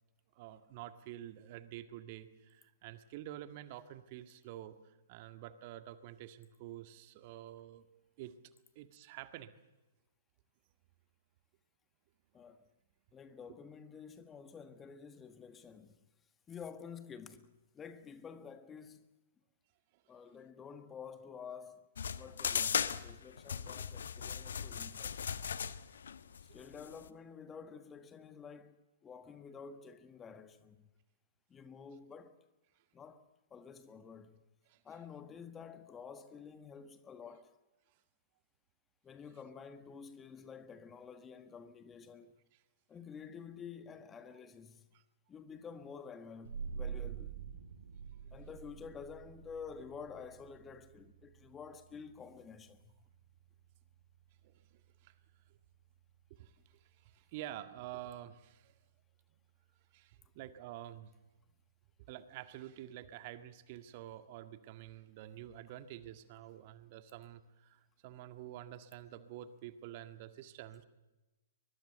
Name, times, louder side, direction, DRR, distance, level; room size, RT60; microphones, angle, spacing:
voice 1, 0.3-7.9 8.2-8.3 8.8-9.5 13.3-13.4 26.5-26.6 34.7-34.8 54.4-55.1 56.3-58.7 59.9-61.1 62.1-70.8, right 12 dB, 45° right, 1.8 m, -49 dB
voice 2, 12.3-12.7 13.1-16.0 16.5-19.1 20.1-21.8 22.1-25.2 26.5-30.9 31.5-32.4 32.9-34.4 34.8-37.5 39.0-42.3 42.9-44.9 45.3-47.4 48.3-52.8, left 6 dB, 15° left, 1.6 m, -50 dB
sound 1, 22.0-27.1, left 7 dB, 65° left, 1.2 m, -37 dB
sound 2, 46.4-57.7, right 7 dB, 70° right, 2.3 m, -48 dB
23.5 x 22.0 x 7.9 m
figure-of-eight pair, 115°, 0 cm